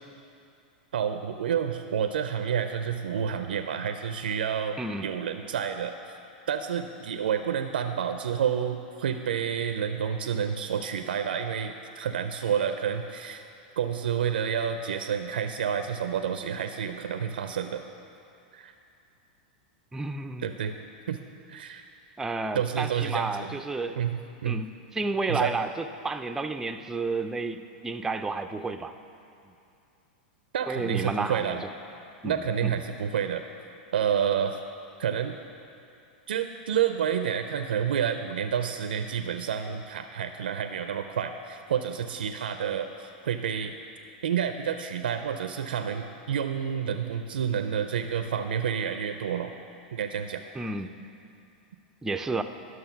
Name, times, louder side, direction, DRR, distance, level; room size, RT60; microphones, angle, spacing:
voice 1, 0.9-6.1 6.5-13.4 13.8-17.8 18.5-18.7 20.4-20.7 21.1-21.2 21.5-21.8 22.5-23.5 24.0-24.6 25.3-25.5 30.5-31.6 32.2-33.4 33.9-34.6 35.0-35.4 36.3-43.7 44.2-49.5 49.9-50.4, right 8 dB, 85° right, 7 dB, 0.5 m, -29 dB
voice 2, 19.9-20.5 22.2-24.0 24.4-24.7 24.9-28.9 30.7-31.7 32.2-32.4 32.6-32.7 50.5-50.9 52.0-52.4, right 3 dB, 10° right, 8 dB, 0.5 m, -31 dB
11.0 x 6.4 x 5.8 m, 2.6 s
hypercardioid pair, 115°, 5 cm